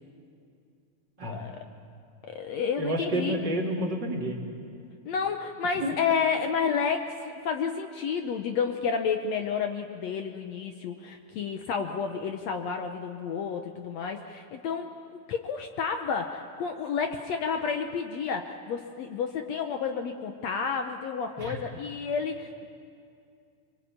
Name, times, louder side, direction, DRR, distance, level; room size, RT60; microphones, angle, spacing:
voice 1, 2.2-3.4 5.1-22.7, left 6 dB, 65° left, 5 dB, 1.9 m, -30 dB
voice 2, 2.8-4.4 5.8-5.9 21.4-21.6, right 1 dB, 35° right, -1 dB, 2.7 m, -30 dB
24.5 x 22.5 x 8.7 m, 2.4 s
omnidirectional pair, 3.7 m